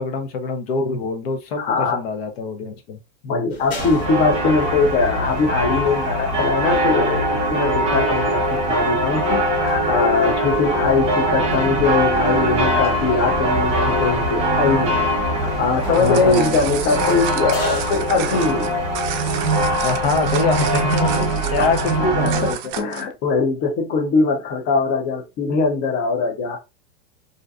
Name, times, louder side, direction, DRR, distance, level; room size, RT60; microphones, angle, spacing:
voice 1, 0.0-3.0 16.0-16.6 19.8-22.6, left 4 dB, 75° left, 0.7 m, -24 dB
voice 2, 1.6-2.0 3.2-8.4 8.7-15.1 15.3-18.8 21.6-21.8 22.2-26.6, left 4 dB, 30° left, 0.5 m, -21 dB
sound 1, 3.5-19.6, left 1 dB, 90° left, 1.4 m, -40 dB
sound 2, 3.8-22.5, right 1 dB, 20° right, 0.9 m, -21 dB
sound 3, 15.8-23.1, right 10 dB, 50° right, 0.4 m, -31 dB
2.6 x 2.1 x 2.4 m
supercardioid pair, 145°, 31 cm